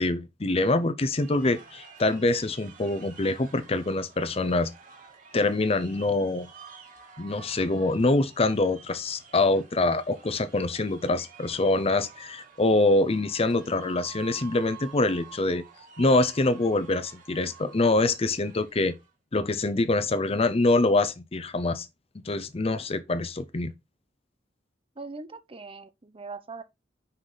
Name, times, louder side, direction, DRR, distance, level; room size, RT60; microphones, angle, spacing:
voice 1, 0.0-4.7 5.3-6.5 7.2-15.6 16.0-18.9 19.3-21.9 22.2-23.7, left 2 dB, 35° left, 0.7 m, -25 dB
sound 1, 1.1-19.1, right 6 dB, 50° right, 1.7 m, -50 dB
voice 2, 25.0-26.6, right 4 dB, 30° right, 0.7 m, -41 dB
5.7 x 4.9 x 3.9 m
head